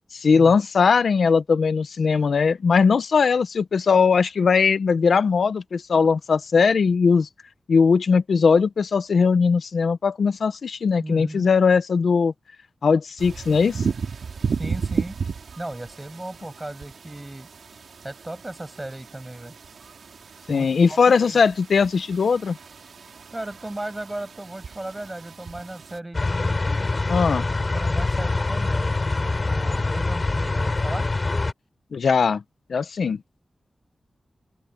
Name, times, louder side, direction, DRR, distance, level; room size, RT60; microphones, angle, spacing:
voice 1, 0.1-7.3 7.7-12.3 12.8-13.9 20.5-22.6 27.1-27.4 31.9-32.4 32.7-33.2, left 5 dB, 80° left, 0.9 m, -19 dB
voice 2, 11.0-11.5 14.6-15.2 15.6-17.5 18.0-19.5 20.5-21.4 23.3-26.6 27.3-27.4 27.7-31.1, right 1 dB, 15° right, 6.6 m, -36 dB
sound 1, 13.2-26.0, right 5 dB, 90° right, 3.1 m, -34 dB
sound 2, 26.1-31.5, left 3 dB, 35° left, 3.9 m, -24 dB
open air
wide cardioid pair, 135°, 0 cm